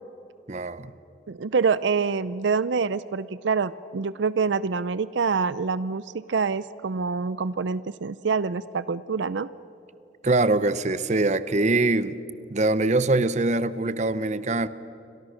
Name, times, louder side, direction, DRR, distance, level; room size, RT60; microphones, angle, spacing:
voice 1, 0.5-0.9 10.2-12.1 12.5-14.7, right 2 dB, 40° right, 14 dB, 0.8 m, -23 dB
voice 2, 1.3-9.5, right 5 dB, 75° right, 17 dB, 0.5 m, -26 dB
30.0 x 25.0 x 6.5 m, 2.8 s
head